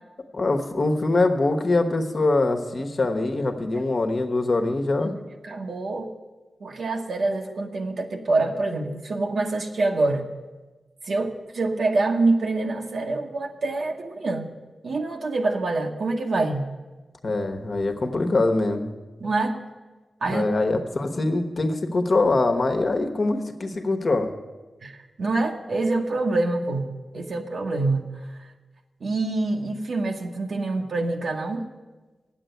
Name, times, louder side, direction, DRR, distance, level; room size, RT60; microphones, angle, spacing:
voice 1, 0.3-5.1 17.2-18.9 20.3-24.3, left 2 dB, 55° left, 6 dB, 1.2 m, -23 dB
voice 2, 5.4-6.1 6.6-10.3 11.0-14.5 14.8-16.7 19.2-19.6 20.2-20.5 24.8-28.1 28.4-28.5 29.0-31.7, right 2 dB, 75° right, 1 dB, 1.1 m, -26 dB
9.1 x 7.5 x 9.0 m, 1.2 s
cardioid pair, 60°, 0 cm